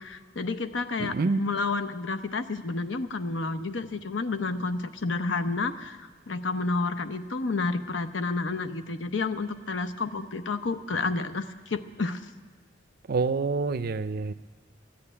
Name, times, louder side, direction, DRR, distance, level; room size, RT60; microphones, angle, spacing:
voice 1, 0.0-12.2, left 3 dB, 75° left, 10 dB, 0.8 m, -30 dB
voice 2, 1.0-1.4 13.1-14.3, right 4 dB, 50° right, 15 dB, 0.5 m, -27 dB
13.5 x 10.5 x 9.8 m, 1.4 s
head